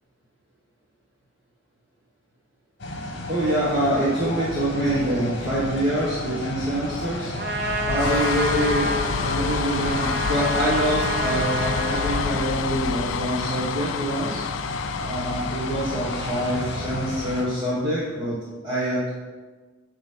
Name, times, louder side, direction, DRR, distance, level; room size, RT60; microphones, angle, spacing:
sound 1, 2.8-17.4, left 2 dB, 60° left, 1.1 m, -32 dB
voice 1, 3.3-7.3 7.9-8.8 9.2-14.4 15.0-18.4 18.6-19.1, right 1 dB, 25° right, -9 dB, 1.3 m, -25 dB
Trumpet, 7.3-12.4, right 2 dB, 50° right, 0.7 m, -29 dB
sound 2, 7.4-18.0, left 7 dB, 75° left, 0.3 m, -30 dB
8.8 x 3.1 x 5.4 m, 1.3 s
head